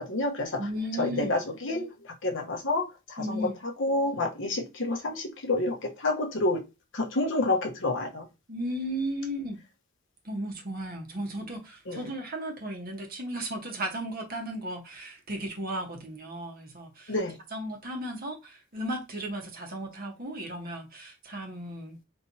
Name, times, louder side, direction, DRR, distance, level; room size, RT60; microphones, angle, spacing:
voice 1, 0.0-0.7 1.0-6.6 6.9-8.3 11.9-12.1 17.1-17.4, left 2 dB, 65° left, 1.1 m, -29 dB
voice 2, 0.6-1.3 3.2-3.6 8.5-9.6 10.2-17.1 17.5-22.0, right 1 dB, 45° right, 1.2 m, -35 dB
4.5 x 3.3 x 2.8 m
head